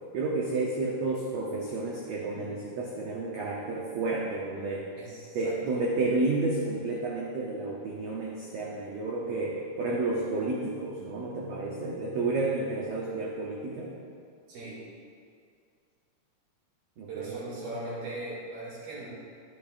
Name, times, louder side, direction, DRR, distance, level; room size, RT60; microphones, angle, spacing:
voice 1, 0.1-4.9 5.3-14.0 17.0-17.4, right 3 dB, 70° right, -3 dB, 1.6 m, -31 dB
voice 2, 4.9-5.5 14.5-14.8 17.1-19.1, right 2 dB, 90° right, -7 dB, 4.6 m, -39 dB
12.5 x 8.7 x 2.6 m, 2.2 s
omnidirectional pair, 4.1 m